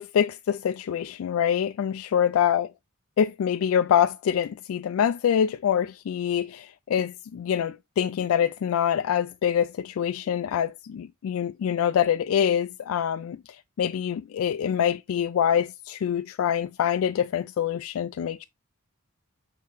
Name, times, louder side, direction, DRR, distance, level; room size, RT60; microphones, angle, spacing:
voice 1, 0.0-2.7 3.2-13.4 13.8-18.4, left 8 dB, 70° left, 0.3 m, -25 dB
7.5 x 4.1 x 3.1 m
head